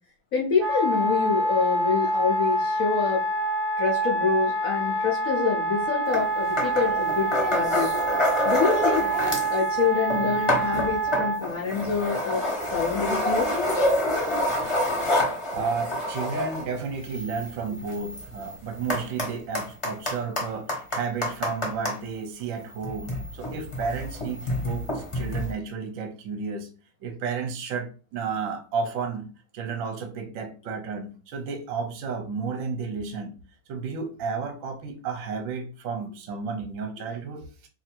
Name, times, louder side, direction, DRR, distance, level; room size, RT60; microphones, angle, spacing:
voice 1, 0.3-3.2 3.8-7.9 8.4-9.1 9.5-13.5 14.6-15.1 15.5-15.6, left 6 dB, 70° left, 0.8 m, -27 dB
Wind instrument woodwind instrument, 0.6-11.4, right 2 dB, 85° right, 0.6 m, -26 dB
sound 1, 6.1-6.3 6.6-9.6 9.9-22.0 22.7-25.5, left 1 dB, 25° left, 0.7 m, -28 dB
voice 2, 15.5-26.7 27.0-33.3 33.7-37.4, right 5 dB, 60° right, 0.9 m, -32 dB
2.8 x 2.6 x 4.3 m
omnidirectional pair, 2.0 m